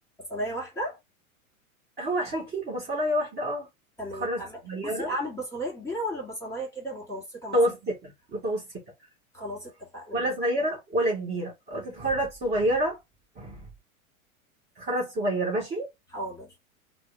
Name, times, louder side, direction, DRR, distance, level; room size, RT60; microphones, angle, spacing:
voice 1, 0.3-1.0 4.0-7.6 9.3-10.3 16.1-16.5, equal, 5° left, 1.9 m, -34 dB
voice 2, 2.0-3.7 4.1-5.1 7.5-8.7 10.1-13.0 13.4-13.7 14.8-15.9, right 1 dB, 25° right, 1.5 m, -28 dB
3.5 x 2.1 x 3.3 m
figure-of-eight pair, 100°, 42 cm